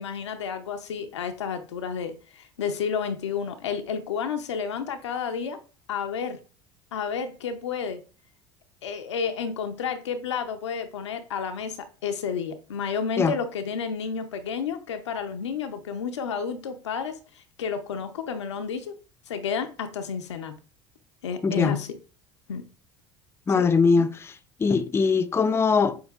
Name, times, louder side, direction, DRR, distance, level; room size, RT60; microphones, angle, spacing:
voice 1, 0.0-5.6 5.9-6.4 6.9-8.0 8.8-17.2 17.6-18.9 19.3-20.5 21.2-21.9 22.5-22.6 23.5-23.6 23.9-24.1, left 6 dB, 85° left, 0.6 m, -31 dB
voice 2, 21.4-21.8 23.5-26.0, left 5 dB, 15° left, 0.4 m, -22 dB
6.3 x 2.6 x 2.4 m
hypercardioid pair, 75°, 15 cm